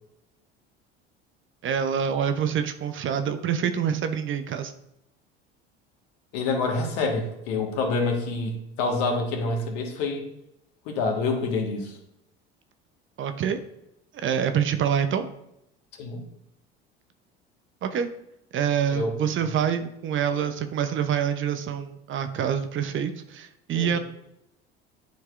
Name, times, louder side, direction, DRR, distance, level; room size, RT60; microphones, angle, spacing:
voice 1, 1.6-4.7 13.2-13.6 14.1-15.3 17.8-18.1 18.5-24.0, right 8 dB, 40° right, 9 dB, 0.7 m, -26 dB
voice 2, 6.3-10.2 10.8-12.0 16.0-16.2 18.9-19.1 23.7-24.0, left 3 dB, 65° left, 2 dB, 1.6 m, -27 dB
11.5 x 4.6 x 2.5 m, 0.83 s
hypercardioid pair, 65°, 31 cm